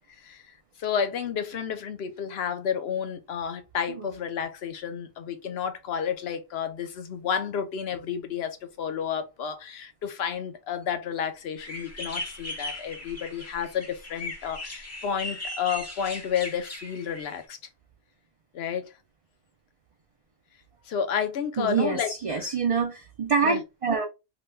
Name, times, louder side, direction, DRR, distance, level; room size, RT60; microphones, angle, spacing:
voice 1, 0.8-17.6 18.5-18.9 20.9-22.5 23.4-23.6, left 7 dB, 70° left, 0.9 m, -31 dB
sound 1, 11.6-17.4, left 1 dB, 20° left, 0.6 m, -38 dB
voice 2, 21.6-24.0, right 5 dB, 50° right, 0.4 m, -26 dB
2.9 x 2.2 x 3.2 m
omnidirectional pair, 1.1 m